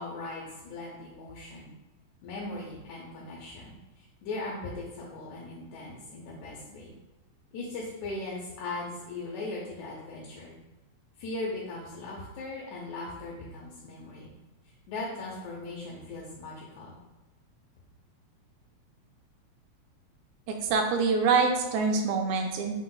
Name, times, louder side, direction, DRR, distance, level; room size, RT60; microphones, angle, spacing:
voice 1, 0.0-1.7 2.2-6.9 7.5-10.6 11.2-14.3 14.9-17.0, left 2 dB, 90° left, -4 dB, 2.1 m, -39 dB
voice 2, 20.5-22.8, right 4 dB, 80° right, 3 dB, 1.8 m, -25 dB
5.1 x 2.1 x 3.8 m, 1.1 s
omnidirectional pair, 3.3 m